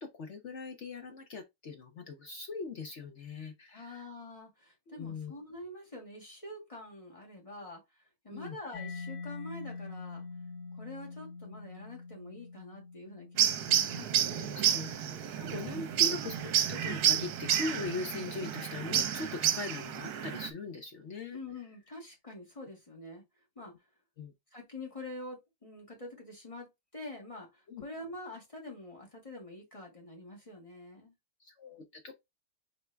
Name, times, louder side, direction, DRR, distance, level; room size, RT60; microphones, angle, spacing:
voice 1, 0.0-4.0 4.9-5.3 8.3-8.6 14.5-14.9 15.4-21.4 24.2-24.3 27.7-27.8 31.4-32.1, left 3 dB, 55° left, 0.8 m, -40 dB
voice 2, 3.7-7.8 8.2-10.2 10.7-14.6 15.5-15.9 21.3-23.2 23.6-23.7 24.5-31.1, left 2 dB, 20° left, 1.8 m, -46 dB
Mallet percussion, 8.7-16.2, left 4 dB, 80° left, 2.6 m, -46 dB
sound 1, 13.4-20.5, right 10 dB, 70° right, 1.2 m, -30 dB
4.5 x 3.5 x 3.3 m
omnidirectional pair, 1.8 m